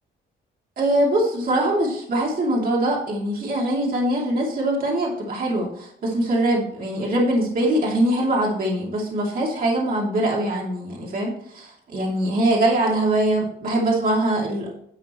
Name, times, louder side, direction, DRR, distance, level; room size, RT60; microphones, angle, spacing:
voice 1, 0.8-14.7, right 1 dB, 45° right, -3 dB, 2.8 m, -22 dB
11.5 x 7.5 x 3.1 m, 0.70 s
cardioid pair, 155°, 21 cm